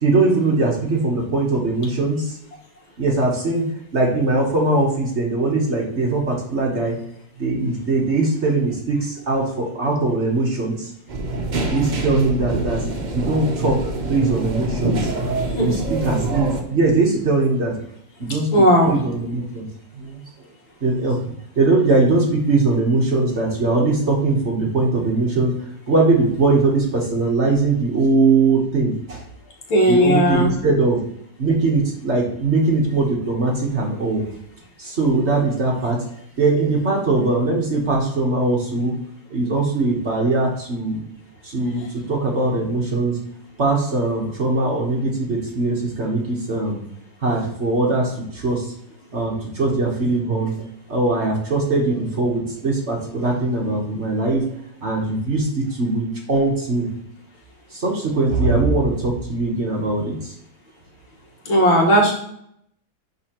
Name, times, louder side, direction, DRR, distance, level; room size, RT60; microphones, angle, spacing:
voice 1, 0.0-2.4 3.0-3.7 3.9-7.0 7.4-10.9 11.7-12.9 13.1-15.1 15.6-17.7 18.2-18.5 18.9-19.6 19.9-20.2 20.8-21.2 21.6-29.2 29.9-31.0 31.4-34.2 34.8-36.0 36.4-38.9 39.3-41.0 41.4-43.2 43.6-46.8 47.2-48.7 49.1-54.4 54.8-56.9 57.7-60.3, right 3 dB, 40° right, -1 dB, 1.2 m, -21 dB
sound 1, 11.1-16.6, right 2 dB, 80° right, 0.4 m, -25 dB
voice 2, 18.5-18.9 29.7-30.5 61.5-62.1, equal, 90° left, -1 dB, 2.3 m, -15 dB
10.5 x 4.1 x 2.9 m, 0.71 s
omnidirectional pair, 2.1 m